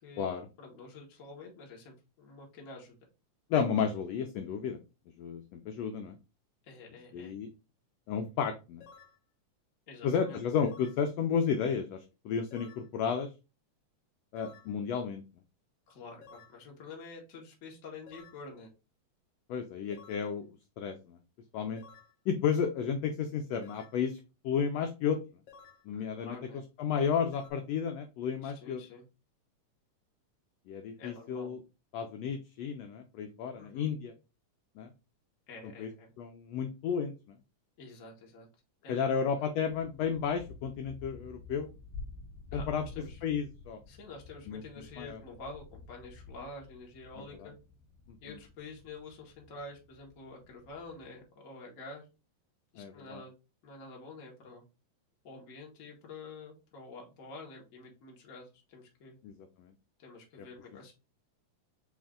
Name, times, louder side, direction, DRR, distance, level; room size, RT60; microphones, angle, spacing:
voice 1, 0.0-0.3 0.6-2.9 6.6-7.3 9.9-10.4 15.9-18.7 25.9-26.6 28.4-29.1 31.0-31.5 33.6-33.9 35.5-36.1 37.8-38.5 38.8-39.4 42.5-43.2 43.9-47.6 48.2-52.0 52.7-53.3 53.6-54.6 55.2-59.2 60.0-60.9, left 3 dB, 45° left, -1 dB, 1.0 m, -48 dB
voice 2, 3.5-4.8 5.2-6.2 7.1-7.5 8.1-8.8 10.0-13.3 14.3-15.2 19.5-20.5 20.8-21.2 21.5-21.8 22.3-24.2 24.4-25.2 25.9-26.4 26.8-28.8 30.7-31.6 31.9-34.1 34.8-34.9 35.8-35.9 36.2-37.4 38.9-41.7 42.5-42.8 43.2-43.8 44.5-44.6 45.0-45.2 47.2-47.5 48.1-48.2 52.8-53.2 59.2-59.7, left 7 dB, 80° left, 5 dB, 1.5 m, -32 dB
sound 1, 8.8-9.2 10.7-11.0 12.5-12.9 14.4-14.7 16.2-16.6 18.1-18.4 19.9-20.3 21.8-22.1 23.6-24.0 25.5-25.8 27.3-27.5, left 6 dB, 60° left, 2.0 m, -54 dB
sound 2, 39.7-51.2, left 3 dB, 30° left, 1.4 m, -50 dB
5.2 x 2.7 x 3.6 m, 0.29 s
omnidirectional pair, 3.5 m